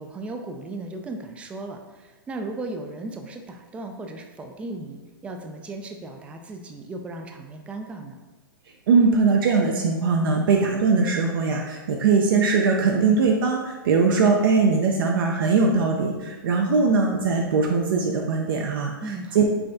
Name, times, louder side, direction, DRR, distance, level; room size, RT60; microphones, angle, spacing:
voice 1, 0.0-8.2 19.0-19.4, right 2 dB, 10° right, 4 dB, 0.3 m, -36 dB
voice 2, 8.9-19.4, right 4 dB, 65° right, 1 dB, 0.5 m, -21 dB
5.6 x 3.3 x 2.6 m, 1.2 s
hypercardioid pair, 130°, 12 cm